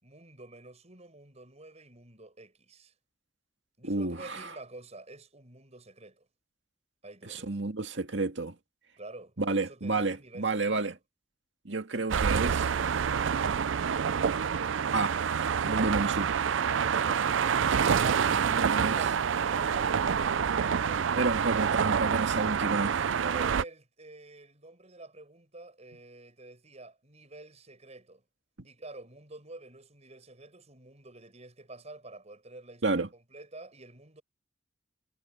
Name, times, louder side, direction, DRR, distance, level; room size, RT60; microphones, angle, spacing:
voice 1, 0.0-2.9 3.8-6.3 7.0-7.5 9.0-11.0 23.2-28.2 28.6-34.2, right 2 dB, 35° right, 7.1 m, -48 dB
voice 2, 3.8-4.5 7.3-8.6 9.4-10.9 11.7-12.7 14.9-15.2 15.7-16.4 18.3-19.0 21.1-23.1 32.8-33.1, right 3 dB, 70° right, 2.1 m, -30 dB
sound 1, 12.1-23.6, right 7 dB, 90° right, 0.5 m, -27 dB
head